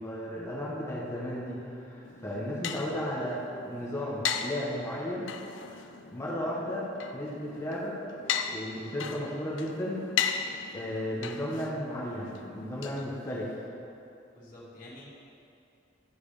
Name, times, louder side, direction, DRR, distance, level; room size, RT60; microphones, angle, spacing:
voice 1, 0.0-3.4 3.6-5.3 5.7-6.9 7.1-8.0 8.5-10.0 10.7-13.6, equal, 15° left, -7 dB, 1.5 m, -34 dB
sound 1, 2.0-13.7, left 7 dB, 75° left, 0.5 m, -37 dB
voice 2, 14.3-15.1, left 1 dB, 50° left, -8 dB, 2.4 m, -49 dB
14.0 x 4.9 x 5.0 m, 2.8 s
head